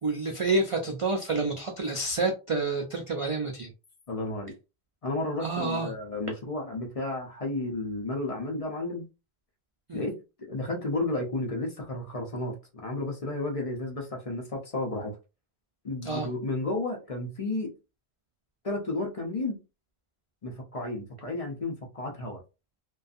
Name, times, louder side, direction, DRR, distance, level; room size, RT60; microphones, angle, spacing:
voice 1, 0.0-3.7 5.4-5.9 9.9-10.0 16.0-16.3, right 3 dB, 60° right, 0.3 m, -28 dB
voice 2, 4.1-4.5 5.0-9.0 9.9-15.1 15.8-17.7 18.6-19.6 20.4-22.4, left 2 dB, 40° left, 0.6 m, -32 dB
2.5 x 2.3 x 2.4 m
omnidirectional pair, 1.1 m